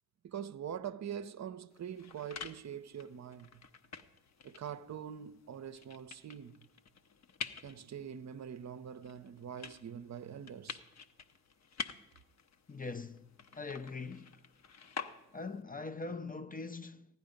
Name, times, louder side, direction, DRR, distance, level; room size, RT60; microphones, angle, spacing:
voice 1, 0.2-3.6 4.4-6.7 7.6-10.8, right 8 dB, 45° right, 0.7 m, -44 dB
sound 1, 1.7-15.6, left 6 dB, 45° left, 1.0 m, -49 dB
voice 2, 12.7-14.4 15.3-17.1, left 3 dB, 20° left, 0.6 m, -42 dB
16.0 x 11.0 x 5.3 m
hypercardioid pair, 45°, 38 cm